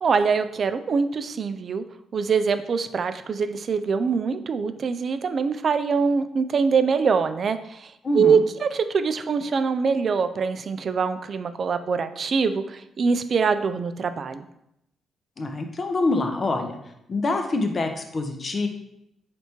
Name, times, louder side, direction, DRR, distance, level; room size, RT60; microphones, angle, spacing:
voice 1, 0.0-1.8 2.1-14.5, right 5 dB, 50° right, 10 dB, 0.3 m, -24 dB
voice 2, 8.0-8.4 15.4-16.8 17.1-18.7, left 2 dB, 40° left, 5 dB, 0.6 m, -25 dB
4.2 x 3.4 x 2.9 m, 0.80 s
cardioid pair, 85°, 0 cm